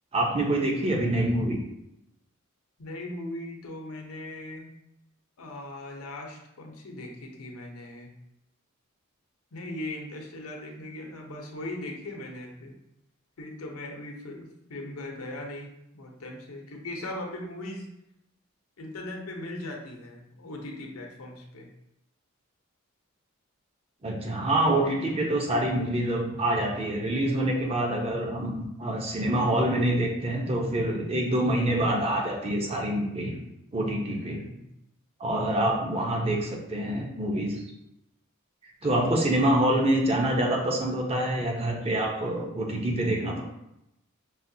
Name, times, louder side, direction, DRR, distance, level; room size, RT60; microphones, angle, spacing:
voice 1, 0.1-1.6 24.0-33.4 33.7-34.4 35.2-37.6 38.8-43.4, right 1 dB, 30° right, 0 dB, 0.6 m, -26 dB
voice 2, 2.8-4.7 5.4-8.1 9.5-12.8 13.4-17.9 18.8-21.7 34.1-34.7 38.8-39.2, left 1 dB, 85° left, 1 dB, 0.8 m, -39 dB
5.6 x 2.2 x 2.7 m, 0.85 s
head